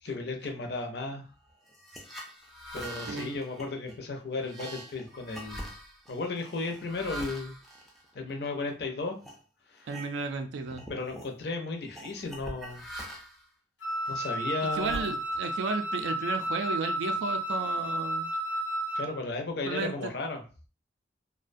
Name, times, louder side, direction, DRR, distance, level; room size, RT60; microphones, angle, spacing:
voice 1, 0.0-1.3 2.7-5.7 6.1-7.6 8.1-9.2 9.7-9.9 10.9-12.8 14.1-15.1 18.9-20.4, left 3 dB, 60° left, 3 dB, 0.5 m, -35 dB
sound 1, 1.7-8.7 9.2-9.4 9.8-10.4 10.7-11.3 11.9-13.5 14.0-15.6, equal, ahead, 0.4 m, -44 dB
voice 2, 9.9-10.9 14.7-18.3 19.6-20.1, right 4 dB, 75° right, 6 dB, 0.3 m, -33 dB
Wind instrument woodwind instrument, 13.8-19.2, right 1 dB, 85° left, 1.0 m, -32 dB
2.4 x 2.1 x 2.5 m, 0.36 s
head